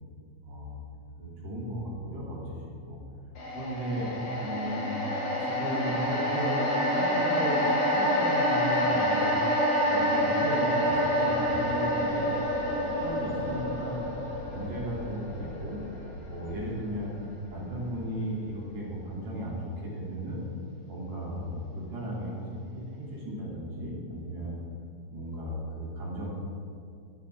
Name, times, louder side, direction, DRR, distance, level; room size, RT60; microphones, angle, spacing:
voice 1, 0.4-0.8 1.2-2.4 2.8-3.0 3.5-4.1 4.4-5.0 5.4-9.4 9.8-12.3 12.5-14.0 14.5-15.8 16.3-17.1 17.5-20.4 20.9-24.6 25.1-26.3, equal, 65° right, -5 dB, 4.5 m, -35 dB
sound 1, 3.4-17.7 18.1-18.2, equal, 70° left, 4.1 m, -28 dB
20.5 x 11.5 x 3.8 m, 2.5 s
omnidirectional pair, 3.3 m